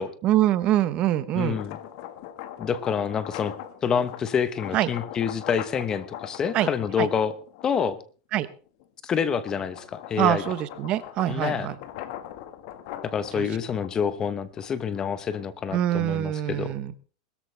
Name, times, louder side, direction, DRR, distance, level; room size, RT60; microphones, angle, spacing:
voice 1, 0.2-1.6 4.7-4.9 6.5-6.7 7.0-7.1 8.3-8.5 10.2-11.8 13.4-13.5 15.7-16.9, right 13 dB, 35° right, 14 dB, 1.0 m, -24 dB
voice 2, 1.3-1.8 2.6-3.5 3.8-7.3 7.6-8.0 9.0-10.4 11.3-11.7 13.0-16.7, left 7 dB, 20° left, 14 dB, 1.1 m, -27 dB
sound 1, 1.4-8.0 8.5-15.7, left 11 dB, 55° left, 1.7 m, -41 dB
21.0 x 13.5 x 3.4 m, 0.38 s
supercardioid pair, 150°, 3 cm